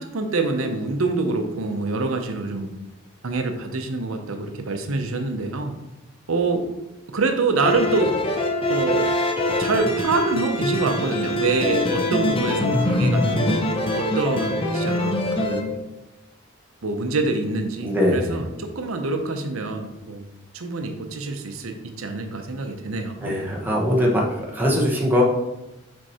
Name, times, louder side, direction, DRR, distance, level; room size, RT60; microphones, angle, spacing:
voice 1, 0.0-2.7 3.2-5.7 6.3-6.7 7.1-8.2 8.7-9.1 9.6-13.6 14.0-15.7 16.8-20.3 20.5-23.4, right 3 dB, 80° right, 5 dB, 0.7 m, -26 dB
Vlads Day Out, 7.6-15.6, left 1 dB, 25° left, 0.7 m, -23 dB
voice 2, 17.8-18.4 23.2-24.3 24.5-25.2, equal, 10° right, -3 dB, 1.1 m, -21 dB
6.3 x 4.5 x 4.2 m, 0.98 s
head